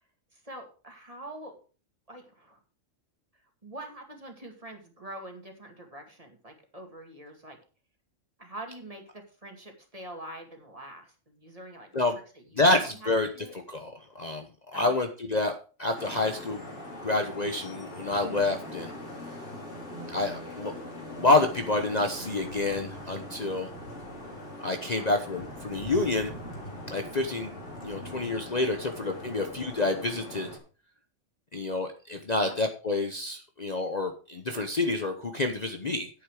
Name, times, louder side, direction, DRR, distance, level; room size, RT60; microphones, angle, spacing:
voice 1, 0.3-1.6 2.1-2.6 3.6-7.6 8.4-11.9 12.3-13.5 14.7-15.0 25.0-25.2 28.0-28.1 32.4-32.6, right 1 dB, 30° right, 3 dB, 2.3 m, -45 dB
voice 2, 12.6-13.3 13.7-14.5 14.7-16.6 17.0-18.9 20.1-20.7 21.2-23.7 24.6-26.3 26.9-27.5 27.8-30.5 31.5-36.1, left 2 dB, 35° left, 5 dB, 1.0 m, -28 dB
Vehicle horn car horn honking / Traffic noise roadway noise, 15.9-30.6, left 1 dB, 65° left, 3.3 m, -41 dB
10.0 x 8.4 x 4.8 m, 0.36 s
omnidirectional pair, 1.3 m